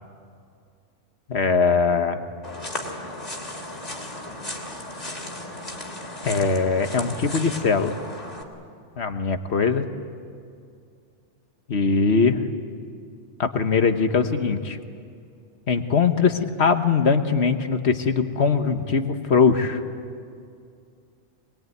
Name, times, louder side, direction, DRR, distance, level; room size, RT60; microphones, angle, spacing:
voice 1, 1.3-2.2 6.2-8.0 9.0-9.9 11.7-12.4 13.4-14.8 15.7-19.8, left 5 dB, 65° left, 8 dB, 1.4 m, -21 dB
sound 1, 2.4-8.4, left 1 dB, 35° left, 3.1 m, -35 dB
24.0 x 21.5 x 9.3 m, 2.3 s
omnidirectional pair, 1.2 m